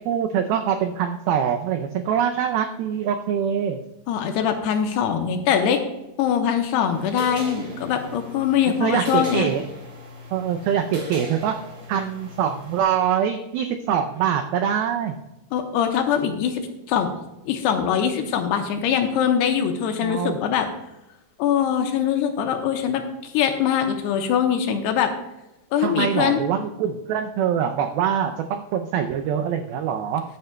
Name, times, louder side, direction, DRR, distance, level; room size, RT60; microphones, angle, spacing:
voice 1, 0.0-3.8 8.8-9.6 10.3-11.6 11.9-15.2 20.0-20.4 25.8-30.2, right 8 dB, 90° right, 5 dB, 2.1 m, -24 dB
voice 2, 4.1-5.8 6.2-9.5 15.5-17.1 17.5-20.7 21.4-25.1 25.7-26.4, left 8 dB, 80° left, 5 dB, 2.7 m, -22 dB
sound 1, 6.9-12.8, left 1 dB, 40° right, 2.5 m, -38 dB
15.0 x 9.5 x 2.2 m, 0.97 s
omnidirectional pair, 5.1 m